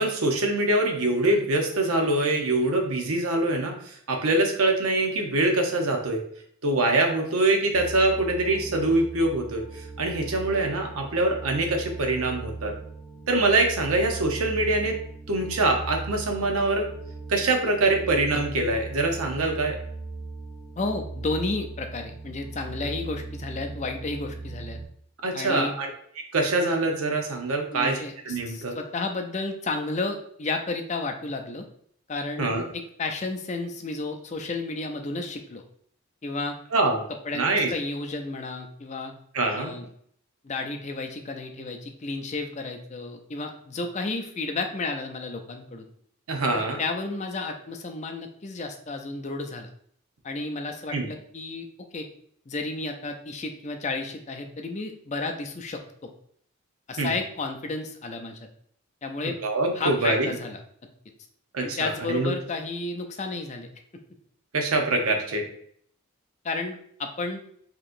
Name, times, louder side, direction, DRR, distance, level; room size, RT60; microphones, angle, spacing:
voice 1, 0.0-6.2 6.6-12.8 13.3-15.0 15.3-16.9 17.3-19.8 25.2-25.9 26.3-28.0 28.2-28.8 32.4-32.6 36.7-37.1 37.3-37.7 39.3-39.8 46.3-46.8 50.9-51.1 57.0-57.1 59.4-60.3 61.5-62.3 64.5-65.5, right 2 dB, 75° right, 3 dB, 0.8 m, -24 dB
sound 1, 7.7-24.9, right 3 dB, 5° left, 1.0 m, -38 dB
voice 2, 20.8-24.8 25.3-25.8 27.7-31.6 32.1-35.6 36.2-36.6 37.2-39.1 39.5-39.9 40.4-45.9 46.5-49.7 50.2-51.7 51.9-52.1 52.5-56.1 56.9-58.4 59.0-59.4 59.7-60.6 61.6-63.7 66.4-67.4, left 3 dB, 30° left, 5 dB, 0.4 m, -32 dB
4.6 x 2.9 x 2.5 m, 0.63 s
head